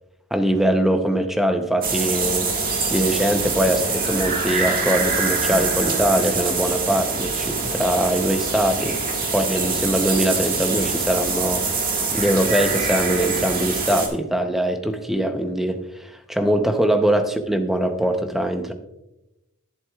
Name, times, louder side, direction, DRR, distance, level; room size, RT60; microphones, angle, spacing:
voice 1, 0.3-2.5 2.9-9.0 9.3-18.7, right 1 dB, ahead, 7 dB, 0.7 m, -22 dB
sound 1, 1.8-14.1, right 4 dB, 40° right, 1.7 m, -24 dB
11.0 x 10.5 x 2.3 m, 0.94 s
head